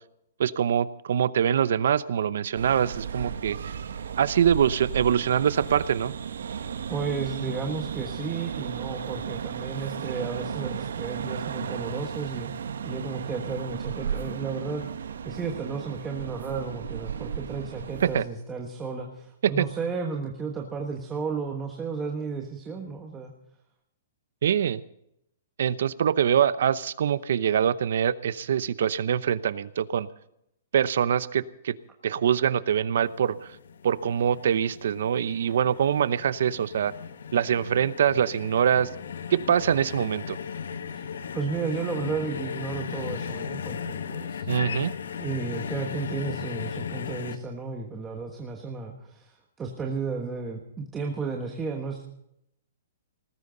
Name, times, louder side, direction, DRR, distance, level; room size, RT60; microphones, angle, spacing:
voice 1, 0.4-3.7 4.2-6.1 18.0-18.2 19.4-19.7 24.4-24.8 25.6-30.1 30.7-31.8 32.0-33.4 33.8-36.9 37.3-38.9 39.3-40.4 44.5-44.9, right 8 dB, 60° right, 17 dB, 0.8 m, -24 dB
sound 1, 2.6-18.2, right 7 dB, 90° right, 1.2 m, -34 dB
voice 2, 6.6-12.5 12.8-23.3 41.0-41.1 41.3-44.5 45.2-52.0, right 5 dB, 10° right, 1 dB, 1.3 m, -33 dB
sound 2, 33.1-47.4, left 7 dB, 85° left, 1.5 m, -36 dB
19.0 x 15.5 x 4.0 m, 0.78 s
hypercardioid pair, 175°, 0 cm